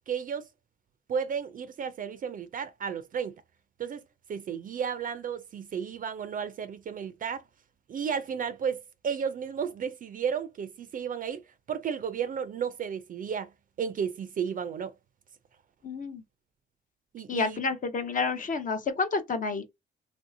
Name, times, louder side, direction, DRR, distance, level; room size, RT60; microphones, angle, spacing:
voice 1, 0.1-0.5 1.1-3.4 3.8-4.0 4.3-7.4 7.9-13.5 13.8-14.9 17.1-17.6, right 7 dB, 45° right, 0.4 m, -33 dB
voice 2, 15.8-16.2 17.3-19.7, left 4 dB, 40° left, 0.7 m, -29 dB
3.1 x 2.6 x 2.6 m
cardioid pair, 90°, 20 cm